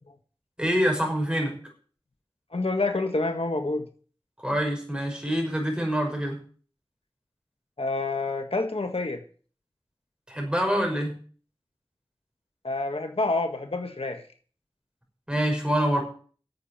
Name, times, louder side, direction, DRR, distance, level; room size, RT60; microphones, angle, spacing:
voice 1, 0.6-1.5 4.4-6.4 10.3-11.2 15.3-16.0, equal, 10° right, 2 dB, 5.8 m, -25 dB
voice 2, 2.5-3.9 7.8-9.2 12.6-14.2, left 2 dB, 85° left, 6 dB, 1.7 m, -28 dB
9.8 x 7.9 x 8.7 m, 0.43 s
wide cardioid pair, 45°, 10 cm